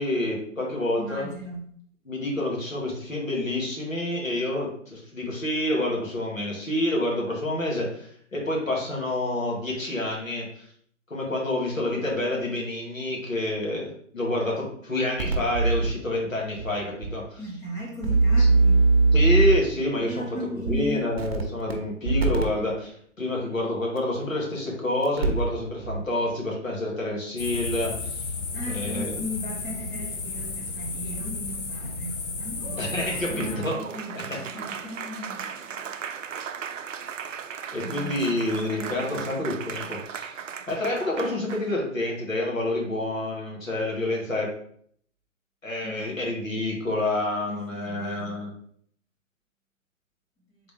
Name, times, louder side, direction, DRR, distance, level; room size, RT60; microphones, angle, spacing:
voice 1, 0.0-1.3 2.0-10.7 11.1-17.4 18.4-18.5 19.1-20.2 20.5-28.2 28.7-29.2 32.8-33.8 37.7-40.3 40.7-44.5 45.6-48.5, left 1 dB, 90° left, -3 dB, 1.8 m, -28 dB
voice 2, 1.0-1.6 17.4-18.8 20.0-21.0 28.5-36.0 37.8-39.3 45.8-46.2 47.5-48.4, left 1 dB, 10° left, -2 dB, 0.6 m, -37 dB
sound 1, 15.2-15.9 16.6-16.7 17.0-17.1 18.0-19.7 20.7-20.8 21.2-21.7 22.0-22.4 24.0-24.1 25.0-25.5 25.8-26.0, right 3 dB, 50° right, 0.8 m, -20 dB
sound 2, 27.4-33.6, left 4 dB, 65° left, 0.8 m, -33 dB
Applause, 32.6-41.8, right 7 dB, 75° right, 0.5 m, -37 dB
3.9 x 3.5 x 3.5 m, 0.62 s
figure-of-eight pair, 125°, 38 cm